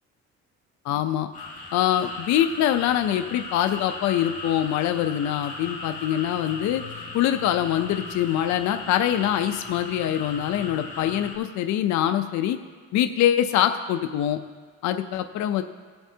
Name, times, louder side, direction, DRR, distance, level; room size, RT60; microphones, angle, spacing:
voice 1, 0.8-1.3 1.7-6.8 7.1-12.6 12.9-14.4 14.8-15.6, left 11 dB, 70° left, 8 dB, 0.5 m, -24 dB
sound 1, 1.3-11.4, left 3 dB, 25° left, 2.5 m, -38 dB
18.0 x 7.9 x 2.8 m, 1.5 s
cardioid pair, 135°, 30 cm